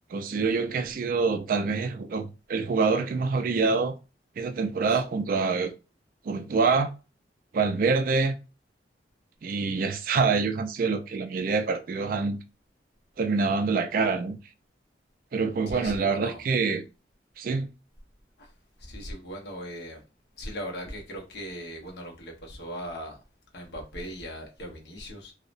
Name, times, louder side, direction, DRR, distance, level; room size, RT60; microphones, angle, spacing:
voice 1, 0.1-3.9 4.4-5.7 6.3-6.9 7.5-8.4 9.4-12.4 13.2-14.4 15.3-16.8 17.4-17.7, right 4 dB, 50° right, 0.3 m, -26 dB
voice 2, 15.7-16.4 18.4-18.5 18.8-20.0 20.4-23.2 23.5-25.3, equal, 65° left, 0.8 m, -39 dB
2.7 x 2.1 x 2.5 m
head